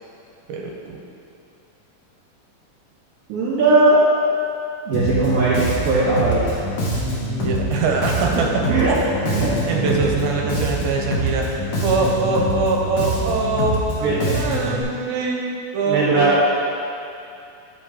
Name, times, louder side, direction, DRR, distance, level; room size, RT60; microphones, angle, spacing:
voice 1, 0.5-1.0 7.4-8.5 9.7-16.4, right 3 dB, 85° right, 0 dB, 2.5 m, -23 dB
voice 2, 3.3-4.0 4.9-6.5 8.4-8.9 9.2-10.1 11.9-12.1 14.0-14.4 15.9-16.4, right 2 dB, 65° right, -14 dB, 3.6 m, -19 dB
Bass guitar, 4.9-14.8, equal, 85° left, 1.3 m, -25 dB
12.5 x 5.2 x 2.9 m, 2.6 s
omnidirectional pair, 4.4 m